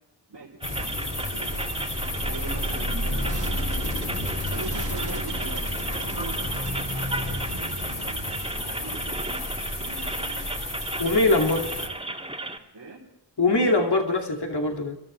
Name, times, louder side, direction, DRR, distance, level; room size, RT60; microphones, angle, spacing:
voice 1, 0.3-1.6 2.2-3.6 4.5-5.6 5.9-8.2 8.5-9.4 9.8-10.5 11.5-12.2 12.7-13.0, right 3 dB, 85° right, -5 dB, 4.1 m, -41 dB
sound 1, 0.6-11.9, left 1 dB, 50° left, 4.0 m, -31 dB
sound 2, 0.6-12.6, right 2 dB, 15° right, 2.4 m, -34 dB
sound 3, 3.2-8.3, right 2 dB, 45° right, 2.8 m, -40 dB
voice 2, 11.0-11.6 13.4-15.0, left 2 dB, 70° left, 2 dB, 2.7 m, -22 dB
27.5 x 13.5 x 3.4 m, 0.87 s
wide cardioid pair, 45°, 42 cm